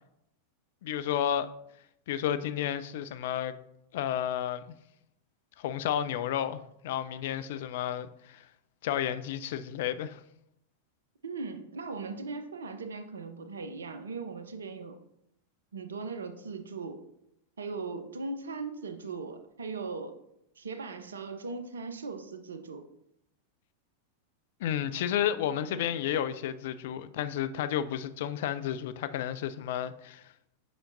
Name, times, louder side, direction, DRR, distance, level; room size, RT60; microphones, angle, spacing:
voice 1, 0.8-1.5 2.1-3.6 3.9-4.6 5.6-8.5 8.8-10.2 24.6-30.2, left 10 dB, 55° left, 0.4 m, -31 dB
voice 2, 11.2-15.0 15.7-17.0 17.6-20.2 20.6-22.9 25.7-25.8, right 4 dB, 70° right, 0.6 m, -39 dB
7.9 x 5.7 x 2.6 m
figure-of-eight pair, 90°, 0 cm